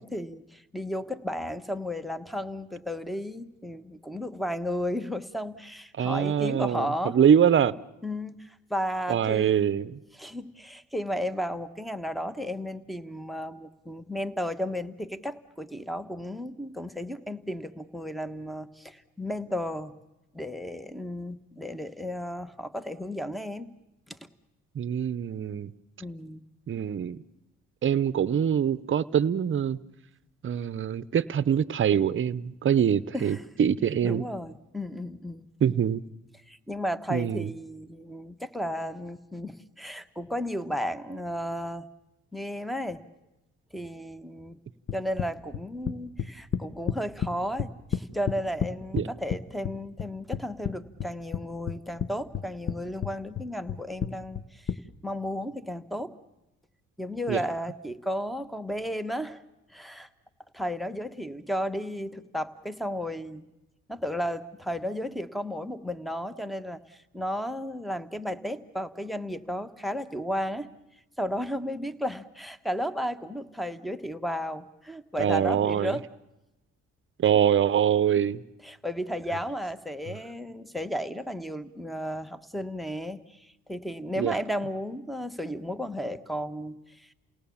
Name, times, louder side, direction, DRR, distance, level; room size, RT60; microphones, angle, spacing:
voice 1, 0.0-7.2 8.0-9.7 10.1-19.9 20.3-23.7 24.1-24.2 26.0-26.4 33.1-33.4 34.0-35.5 36.5-41.9 42.3-43.0 43.7-44.6 44.9-56.1 57.0-59.4 59.7-60.1 60.5-63.5 63.9-70.7 71.2-76.1 78.6-87.1, equal, ahead, 12 dB, 1.1 m, -34 dB
voice 2, 6.0-7.7 9.1-10.0 24.8-25.7 26.7-27.2 27.8-29.8 30.4-34.2 35.6-36.0 37.1-37.5 48.9-49.1 57.3-57.4 75.2-76.0 77.2-78.4 84.2-84.4, right 8 dB, 40° right, 16 dB, 0.8 m, -24 dB
sound 1, 44.9-47.3 47.6-49.4 49.6-50.7 51.0-52.1 52.3-52.8 53.0-54.8, left 8 dB, 40° left, 1.0 m, -30 dB
29.0 x 18.5 x 7.1 m, 0.95 s
cardioid pair, 90°, 30 cm